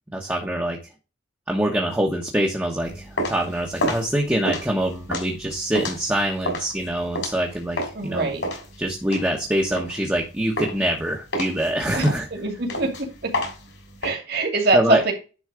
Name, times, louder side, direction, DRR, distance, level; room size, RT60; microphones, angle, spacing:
voice 1, 0.1-0.8 1.5-7.8 8.0-8.3 8.8-12.3 14.7-15.0, right 1 dB, 10° right, 0 dB, 1.2 m, -24 dB
sound 1, 2.8-8.1 8.4-10.2 10.6-11.0 11.3-14.1, equal, 70° left, 3.2 m, -29 dB
voice 2, 7.9-8.4 11.9-13.1 14.0-15.1, right 3 dB, 55° right, 2 dB, 2.6 m, -24 dB
10.5 x 4.0 x 4.9 m, 0.31 s
head